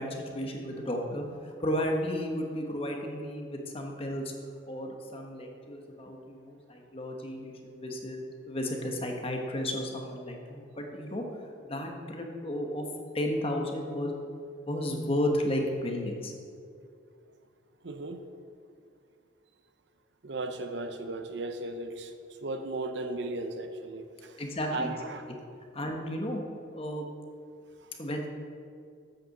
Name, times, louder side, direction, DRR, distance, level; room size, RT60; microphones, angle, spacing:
voice 1, 0.0-4.3 4.7-11.2 11.6-12.9 13.1-14.1 14.7-16.3 24.4-24.9 25.7-26.4 26.7-27.1 28.0-28.3, left 1 dB, 30° left, 2 dB, 1.1 m, -33 dB
voice 2, 17.8-18.2 20.2-22.1 22.4-24.4 24.7-25.2 27.8-27.9, right 2 dB, 60° right, 7 dB, 0.7 m, -36 dB
8.4 x 6.6 x 6.5 m, 2.4 s
head